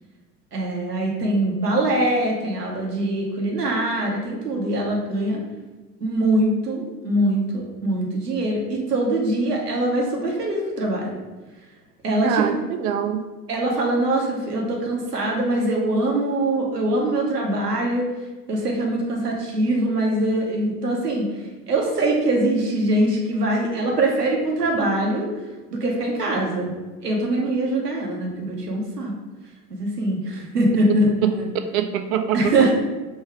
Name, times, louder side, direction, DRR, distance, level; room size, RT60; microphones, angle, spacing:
voice 1, 0.5-5.4 6.0-11.2 12.0-12.5 13.5-18.1 18.5-21.3 21.7-25.3 25.7-26.7 27.0-29.1 29.7-31.4 32.3-32.7, right 1 dB, 85° right, -1 dB, 0.9 m, -23 dB
voice 2, 12.2-13.2 31.7-32.5, right 9 dB, 65° right, 7 dB, 0.6 m, -24 dB
3.5 x 2.6 x 4.6 m, 1.2 s
figure-of-eight pair, 70°, 46 cm